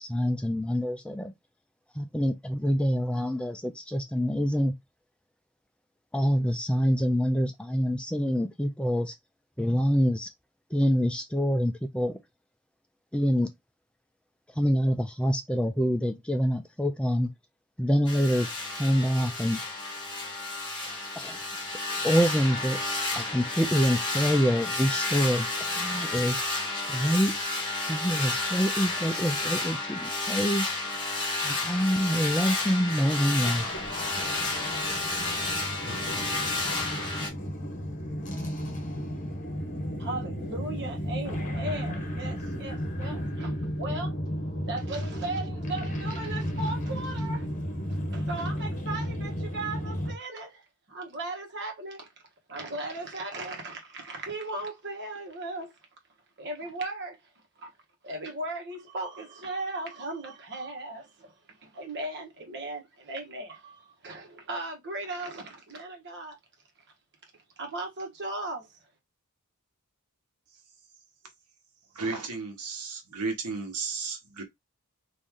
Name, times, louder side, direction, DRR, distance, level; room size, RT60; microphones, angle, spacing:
voice 1, 0.0-1.3 2.0-4.7 6.1-9.1 9.6-10.3 10.7-12.2 13.1-13.5 14.6-17.3 17.8-18.5 18.8-19.6 21.2-21.5 22.0-22.8 23.2-25.5 25.7-26.4 26.8-27.5 27.9-30.7 31.4-33.7, equal, 5° left, 0.4 m, -26 dB
sound 1, 18.0-37.3, left 2 dB, 20° left, 1.4 m, -31 dB
fidgetspiners ambience, 33.0-50.2, equal, 35° left, 1.1 m, -33 dB
voice 2, 40.0-44.2 44.7-47.5 47.9-50.6 50.9-52.1 52.5-55.7 56.4-57.2 57.6-57.7 58.0-66.4 67.6-68.8, right 2 dB, 55° right, 1.2 m, -37 dB
voice 3, 71.9-74.4, right 4 dB, 85° right, 1.1 m, -33 dB
3.1 x 2.6 x 3.6 m
head